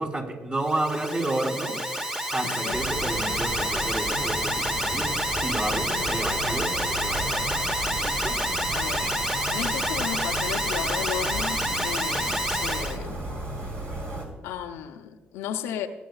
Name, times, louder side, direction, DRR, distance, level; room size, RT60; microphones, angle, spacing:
voice 1, 0.0-1.8 2.3-7.7 8.0-8.4, right 2 dB, 35° right, 0 dB, 3.7 m, -31 dB
Alarm, 0.6-13.0, equal, 15° right, 1.2 m, -28 dB
voice 2, 2.4-2.8 5.9-6.2 8.7-9.2 9.5-13.3 14.4-15.9, left 9 dB, 85° left, 5 dB, 0.8 m, -34 dB
sound 1, 2.7-14.3, right 1 dB, 60° right, 3.4 m, -35 dB
22.5 x 9.3 x 2.4 m, 1.4 s
supercardioid pair, 55°, 4 cm